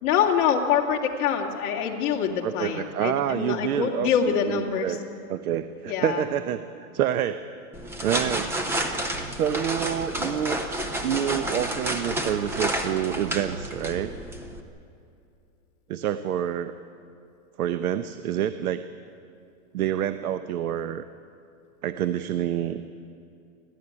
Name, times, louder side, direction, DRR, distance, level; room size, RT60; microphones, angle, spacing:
voice 1, 0.0-5.0 5.9-6.2, left 8 dB, 40° left, -1 dB, 2.7 m, -25 dB
voice 2, 2.4-5.0 5.3-7.5 8.0-8.5 9.4-10.6 11.0-14.1 15.9-16.7 17.6-18.8 19.7-21.1 21.8-22.8, right 10 dB, 80° right, 11 dB, 1.0 m, -27 dB
sound 1, 7.7-14.6, right 1 dB, 5° right, 0.6 m, -30 dB
29.5 x 12.5 x 9.8 m, 2.6 s
supercardioid pair, 165°, 43 cm